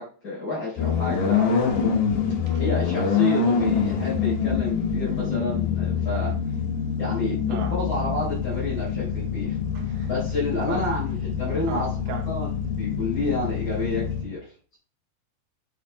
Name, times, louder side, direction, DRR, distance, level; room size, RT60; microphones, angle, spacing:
voice 1, 0.0-1.9 2.6-6.3 7.0-9.6 10.1-11.9 12.3-14.8, left 2 dB, 20° left, 4.4 m, -30 dB
sound 1, 0.8-14.2, left 6 dB, 75° left, 3.6 m, -25 dB
voice 2, 9.7-10.1 10.7-10.9 11.7-12.3, right 6 dB, 70° right, 3.0 m, -35 dB
8.5 x 7.2 x 3.4 m
omnidirectional pair, 4.9 m